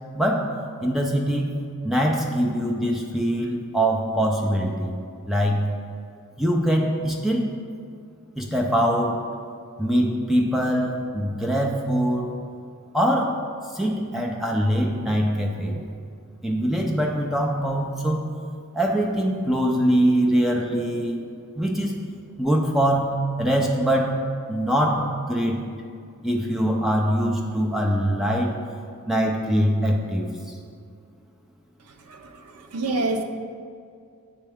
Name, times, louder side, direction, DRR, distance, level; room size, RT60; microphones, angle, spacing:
voice 1, 0.1-0.5 0.8-1.6 1.8-5.0 5.3-5.6 6.4-7.5 8.4-9.2 9.8-12.3 12.9-13.3 13.7-15.9 16.4-18.2 18.7-21.2 21.6-22.0 22.4-24.2 24.5-25.6 26.2-28.5 29.1-30.6, equal, ahead, -1 dB, 0.5 m, -23 dB
voice 2, 32.0-33.2, right 2 dB, 80° right, 5 dB, 0.6 m, -28 dB
9.8 x 3.4 x 3.5 m, 2.3 s
head